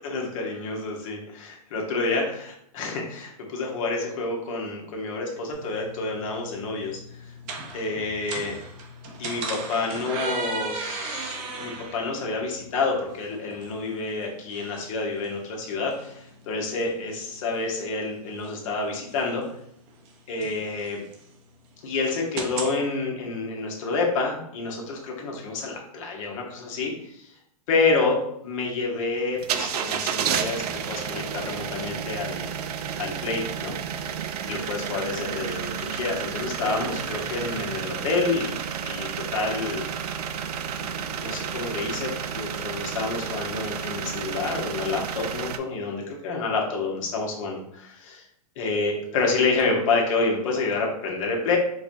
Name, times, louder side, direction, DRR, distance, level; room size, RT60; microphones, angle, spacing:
voice 1, 0.0-7.0 7.7-8.5 9.2-19.4 20.3-21.0 21.8-27.3 27.7-28.2 28.4-30.6 30.9-32.5 33.0-33.8 34.0-38.6 38.8-39.9 40.8-48.2 48.6-51.6, left 3 dB, 55° left, 0 dB, 1.0 m, -28 dB
sound 1, 5.5-22.8, right 3 dB, 35° right, 0.6 m, -38 dB
sound 2, 29.4-45.6, right 8 dB, 75° right, 0.4 m, -31 dB
4.6 x 2.2 x 2.6 m, 0.72 s
hypercardioid pair, 145°, 20 cm